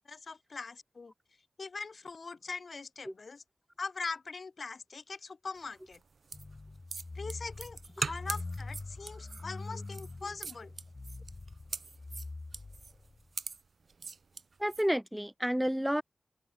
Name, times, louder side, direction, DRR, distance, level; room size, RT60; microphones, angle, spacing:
voice 1, 0.1-1.1 1.6-3.4 3.8-6.0 7.2-10.7, left 4 dB, 70° left, 3.6 m, -42 dB
sound 1, 5.9-14.9, right 4 dB, 75° right, 4.1 m, -42 dB
sound 2, 6.3-13.2, left 3 dB, 45° left, 2.9 m, -44 dB
voice 2, 14.6-16.0, equal, 5° right, 0.4 m, -30 dB
open air
cardioid pair, 55°, 0 cm